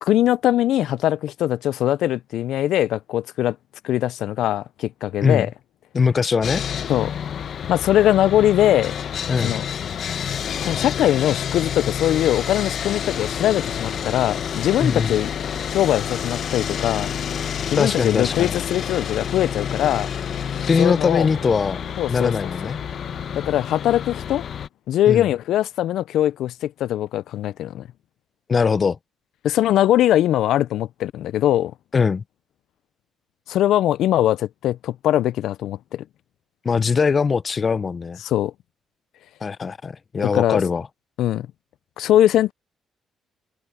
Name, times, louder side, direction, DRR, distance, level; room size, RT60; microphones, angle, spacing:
voice 1, 0.0-3.6 3.8-5.5 6.9-7.1 7.7-9.0 9.4-9.6 10.6-15.3 15.7-17.1 17.7-20.1 20.8-21.3 22.0-22.3 23.4-24.4 24.9-27.8 29.4-31.7 33.5-36.0 38.2-38.5 40.2-40.6 41.2-41.5 42.0-42.5, left 12 dB, 80° left, 0.4 m, -21 dB
voice 2, 5.9-6.6 9.3-9.6 14.8-15.1 17.8-18.5 20.7-21.8 22.1-22.8 25.1-25.3 28.5-29.0 31.9-32.2 36.6-38.2 39.4-40.9, left 5 dB, 45° left, 0.7 m, -21 dB
Sawing, 6.4-24.7, left 8 dB, 65° left, 1.0 m, -29 dB
Organ, 13.6-24.2, right 8 dB, 60° right, 4.6 m, -48 dB
supercardioid pair, 65°, 0 cm